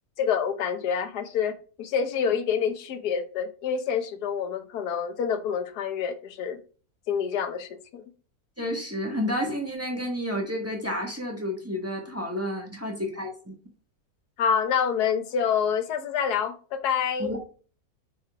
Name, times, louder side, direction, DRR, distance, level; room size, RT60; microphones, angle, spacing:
voice 1, 0.2-6.6 7.1-8.1 14.4-17.3, left 7 dB, 85° left, 1.4 m, -27 dB
voice 2, 8.6-13.5 17.2-17.4, left 1 dB, 10° right, 1.3 m, -30 dB
7.4 x 4.5 x 4.8 m
omnidirectional pair, 1.6 m